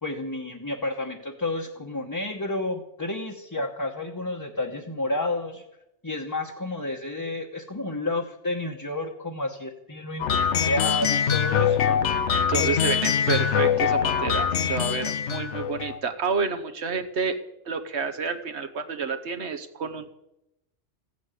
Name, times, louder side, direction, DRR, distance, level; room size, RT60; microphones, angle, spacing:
voice 1, 0.0-5.6 6.0-12.0 12.6-12.9, left 2 dB, 20° left, 1 dB, 1.0 m, -31 dB
sound 1, 10.2-16.0, left 8 dB, 80° left, 1.2 m, -23 dB
voice 2, 12.3-17.4 17.7-20.1, right 5 dB, 70° right, 8 dB, 1.3 m, -29 dB
15.0 x 9.3 x 8.3 m, 0.88 s
omnidirectional pair, 1.2 m